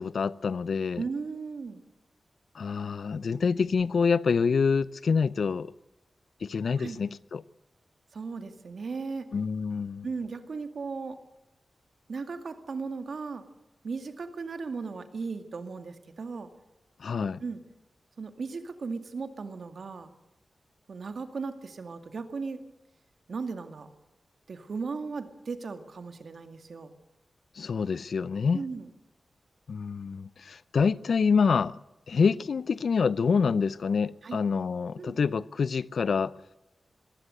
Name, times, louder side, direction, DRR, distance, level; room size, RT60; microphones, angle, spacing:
voice 1, 0.0-1.0 2.5-5.7 6.4-7.4 9.3-10.1 17.0-17.4 27.5-28.6 29.7-31.8 32.1-36.3, left 5 dB, 75° left, 0.6 m, -26 dB
voice 2, 1.0-1.8 6.8-7.0 8.1-9.3 10.0-11.2 12.1-13.4 13.8-16.5 17.4-17.6 18.2-20.1 20.9-22.6 23.3-23.9 24.5-26.9 28.5-28.9 34.2-34.4 35.0-35.2, right 4 dB, 70° right, 2.2 m, -36 dB
22.0 x 16.0 x 8.0 m
wide cardioid pair, 95°, 0 cm